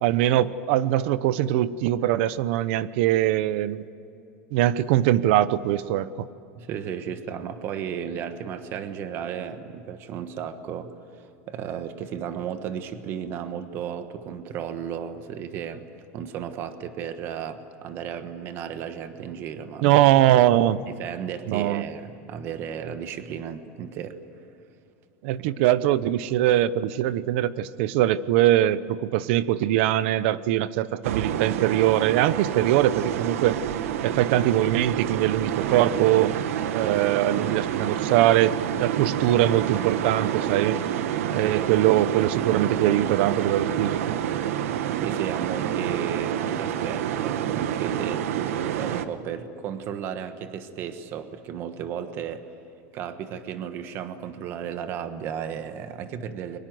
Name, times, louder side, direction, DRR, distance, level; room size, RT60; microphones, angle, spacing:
voice 1, 0.0-3.8 4.5-6.3 19.8-20.8 21.5-21.8 25.2-33.6 34.0-36.4 36.7-40.8 41.3-44.2, right 13 dB, 55° right, 16 dB, 0.9 m, -22 dB
voice 2, 6.5-15.9 16.1-20.1 20.9-24.2 25.4-25.6 41.4-41.7 45.0-48.2 48.7-52.5 52.9-56.6, right 8 dB, 30° right, 9 dB, 1.3 m, -34 dB
sound 1, 31.0-49.1, right 10 dB, 80° right, 1.4 m, -28 dB
30.0 x 23.5 x 7.9 m, 2.9 s
supercardioid pair, 175°, 8 cm